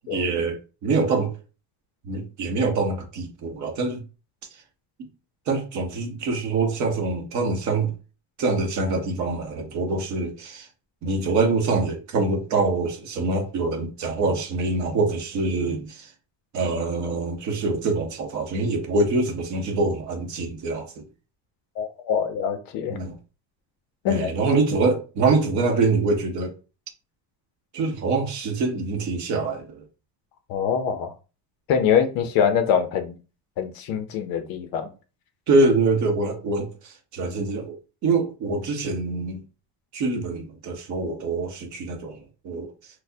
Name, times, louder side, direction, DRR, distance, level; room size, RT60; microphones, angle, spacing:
voice 1, 0.1-1.3 2.0-4.0 5.5-7.9 8.4-10.7 11.0-16.1 16.5-21.0 22.9-23.1 24.1-26.5 27.7-29.8 35.5-37.8 38.0-39.4 39.9-42.7, right 3 dB, 40° right, 0.7 m, -25 dB
voice 2, 21.8-23.0 24.0-24.3 30.5-31.1 31.7-33.1 33.6-34.9, left 8 dB, 50° left, 0.5 m, -24 dB
4.2 x 2.0 x 2.6 m
cardioid pair, 180°, 45 cm